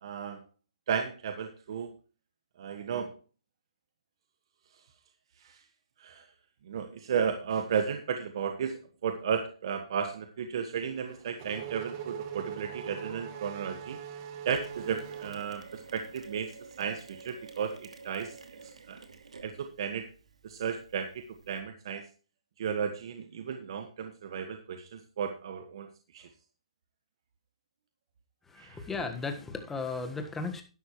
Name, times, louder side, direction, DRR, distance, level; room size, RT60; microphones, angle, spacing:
voice 1, 0.0-0.4 0.9-1.9 2.6-3.1 5.4-5.6 6.0-6.3 6.7-14.0 14.4-18.4 18.9-19.0 19.4-20.1 20.4-22.0 22.6-25.9 26.1-26.3 28.6-28.8, right 7 dB, 50° right, 7 dB, 1.4 m, -34 dB
Race car auto racing / Accelerating revving vroom, 10.8-16.1, right 8 dB, 30° right, 1.9 m, -42 dB
Mechanisms, 14.5-21.6, right 4 dB, 90° right, 2.5 m, -50 dB
voice 2, 28.4-30.6, left 4 dB, 5° left, 6 dB, 1.4 m, -35 dB
11.5 x 11.5 x 3.1 m, 0.35 s
hypercardioid pair, 155°, 3 cm